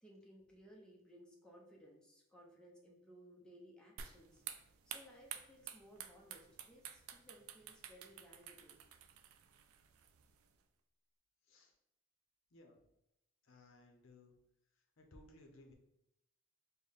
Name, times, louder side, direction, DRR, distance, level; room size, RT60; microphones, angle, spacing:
voice 1, 0.0-4.4 4.9-8.8, equal, 5° left, -2 dB, 0.6 m, -60 dB
sound 1, 4.0-10.6, right 9 dB, 85° right, 0.3 m, -52 dB
voice 2, 13.4-14.3 15.0-15.7, left 2 dB, 70° left, 3 dB, 0.6 m, -61 dB
4.0 x 2.1 x 3.4 m, 0.83 s
head